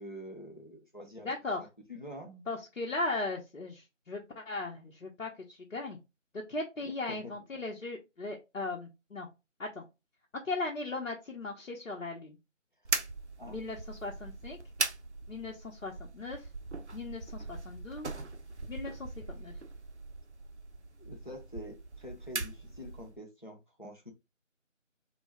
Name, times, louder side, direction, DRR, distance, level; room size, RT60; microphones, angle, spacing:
voice 1, 0.0-1.3 1.9-2.5 6.8-7.3 13.4-13.6 21.0-24.1, left 1 dB, 40° left, 0.6 m, -46 dB
voice 2, 1.2-1.6 2.5-6.0 6.5-9.3 9.6-9.8 10.4-12.4 13.5-14.6 15.3-16.5 16.9-18.1 18.7-19.5, left 3 dB, 70° left, 0.8 m, -38 dB
sound 1, 12.8-23.2, right 3 dB, 60° right, 0.5 m, -40 dB
2.2 x 2.1 x 3.3 m
figure-of-eight pair, 175°, 39 cm